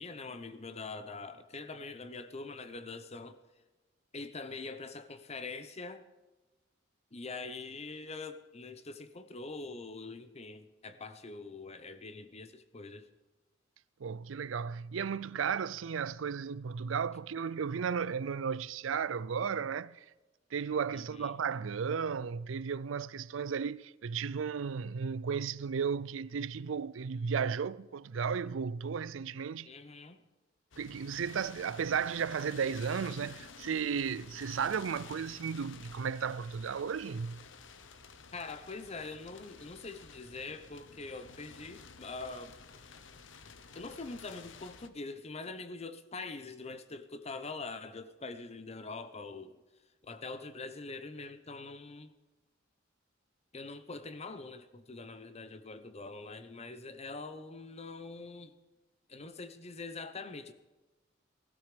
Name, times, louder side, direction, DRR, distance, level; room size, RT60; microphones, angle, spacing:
voice 1, 0.0-3.4 4.1-6.0 7.1-13.1 20.9-21.4 29.7-30.2 38.3-42.5 43.7-49.6 50.0-52.1 53.5-58.5 59.1-60.5, left 3 dB, 35° left, 0.9 m, -44 dB
voice 2, 14.0-20.0 20.5-29.7 30.8-37.4, right 6 dB, 85° right, 0.5 m, -34 dB
sound 1, 30.7-44.9, left 5 dB, 70° left, 1.0 m, -52 dB
16.5 x 16.0 x 5.1 m
head